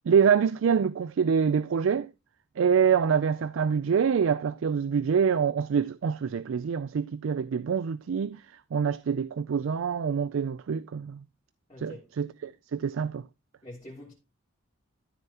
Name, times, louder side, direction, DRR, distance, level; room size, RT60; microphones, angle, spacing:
voice 1, 0.1-2.1 2.6-8.4 8.7-11.2 11.8-13.2, right 6 dB, 85° right, 0.4 m, -25 dB
voice 2, 11.7-12.1 13.6-14.1, left 1 dB, 25° left, 3.0 m, -45 dB
13.0 x 7.1 x 2.9 m
head